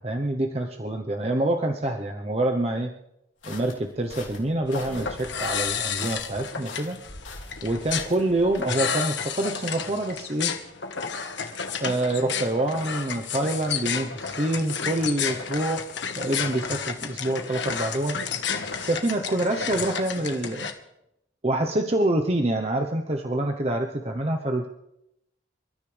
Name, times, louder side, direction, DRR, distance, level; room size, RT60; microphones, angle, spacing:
voice 1, 0.0-2.9 3.4-7.0 7.6-10.5 11.8-15.9 16.1-18.2 18.8-20.7 21.4-24.7, right 1 dB, 30° right, 3 dB, 0.9 m, -26 dB
sound 1, 3.4-8.6, left 3 dB, 90° left, 3.2 m, -43 dB
sound 2, 4.7-20.7, left 6 dB, 70° left, 1.5 m, -31 dB
28.0 x 13.5 x 3.4 m, 0.82 s
head